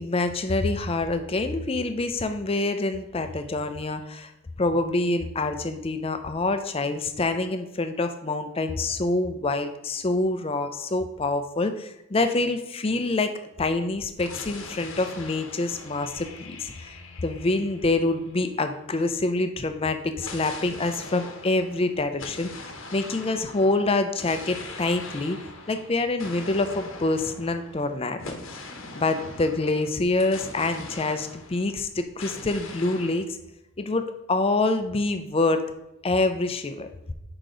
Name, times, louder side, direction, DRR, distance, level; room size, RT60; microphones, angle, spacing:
voice 1, 0.0-4.3 4.6-16.9 17.2-25.4 25.7-28.4 29.0-33.4 33.8-35.6 36.0-36.9, left 2 dB, 25° left, 8 dB, 0.5 m, -26 dB
sound 1, 14.2-18.9 20.2-31.8 32.2-33.3, left 3 dB, 65° left, 0.9 m, -41 dB
6.6 x 4.9 x 3.8 m, 0.88 s
head